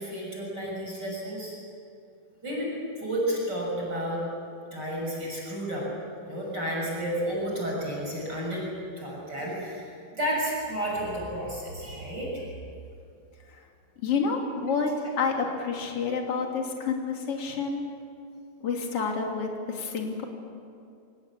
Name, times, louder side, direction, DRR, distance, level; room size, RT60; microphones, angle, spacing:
voice 1, 0.0-1.6 2.4-4.2 4.7-5.8 6.3-8.6 9.0-12.5, equal, 25° right, -3 dB, 6.8 m, -31 dB
voice 2, 14.0-17.8 18.6-20.2, left 5 dB, 35° left, 1 dB, 3.3 m, -29 dB
26.0 x 19.5 x 8.5 m, 2.5 s
omnidirectional pair, 4.9 m